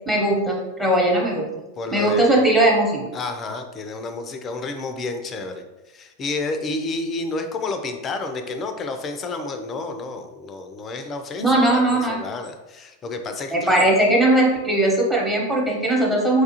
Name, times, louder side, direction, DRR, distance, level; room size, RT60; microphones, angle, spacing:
voice 1, 0.1-1.4 1.9-3.1 11.4-12.2 13.5-16.4, right 1 dB, 5° right, -1 dB, 1.1 m, -19 dB
voice 2, 1.8-2.4 3.1-13.8, left 3 dB, 30° left, 6 dB, 0.5 m, -30 dB
4.6 x 2.4 x 2.9 m, 1.0 s
hypercardioid pair, 100°, 0 cm